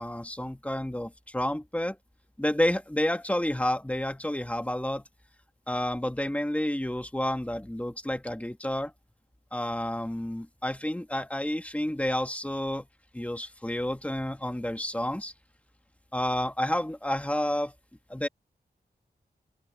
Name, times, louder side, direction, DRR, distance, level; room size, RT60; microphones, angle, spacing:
voice 1, 0.0-2.0 2.4-5.0 5.7-8.9 9.5-12.9 13.1-15.3 16.1-17.7 18.1-18.3, left 1 dB, 10° left, 1.5 m, -30 dB
open air
wide cardioid pair, 80°, 17 cm